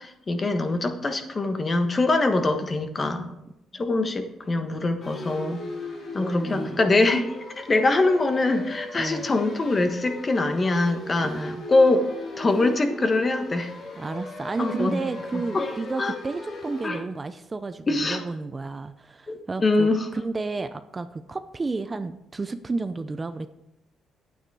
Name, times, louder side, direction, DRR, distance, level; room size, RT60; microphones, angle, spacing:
voice 1, 0.0-3.3 3.7-5.6 6.1-7.3 7.6-12.1 12.4-13.7 14.6-15.0 15.5-15.7 16.0-16.1 16.8-17.0 17.9-18.2 19.3-20.1, left 2 dB, 30° left, 7 dB, 1.3 m, -23 dB
sound 1, 5.0-16.9, left 2 dB, 55° left, 2.7 m, -38 dB
voice 2, 6.1-6.8 9.0-9.3 11.2-11.6 14.0-23.5, right 3 dB, 25° right, 11 dB, 0.6 m, -32 dB
9.4 x 9.0 x 4.8 m, 0.87 s
cardioid pair, 90°, 0 cm